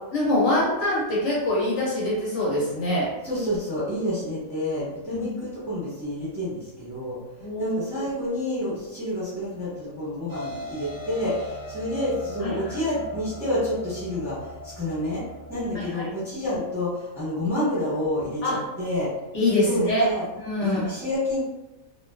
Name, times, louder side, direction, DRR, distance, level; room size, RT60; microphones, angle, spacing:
voice 1, 0.1-3.1 5.1-5.3 7.4-8.0 12.4-12.7 15.7-16.1 18.4-18.6 19.3-20.1 20.4-20.9, left 1 dB, 65° left, -6 dB, 0.9 m, -24 dB
voice 2, 3.2-7.2 7.6-15.2 15.5-19.1 19.6-20.2 20.6-21.4, left 1 dB, ahead, -10 dB, 1.0 m, -29 dB
sound 1, 10.3-15.9, equal, 30° right, 0.4 m, -39 dB
2.5 x 2.2 x 2.3 m, 1.0 s
omnidirectional pair, 1.4 m